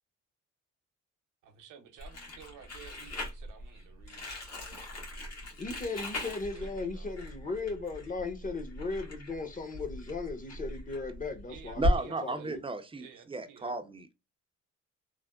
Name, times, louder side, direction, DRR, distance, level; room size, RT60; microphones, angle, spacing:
voice 1, 1.4-5.0 5.8-7.1 11.5-12.5 13.0-13.8, right 8 dB, 85° right, 0.8 m, -53 dB
Crumpling crinkling, 2.0-12.0, left 1 dB, 55° left, 1.5 m, -37 dB
voice 2, 5.6-11.8 12.2-12.6, left 3 dB, 25° left, 0.9 m, -37 dB
voice 3, 11.8-14.1, right 3 dB, 20° right, 0.5 m, -35 dB
3.3 x 2.1 x 2.3 m
cardioid pair, 90°, 30 cm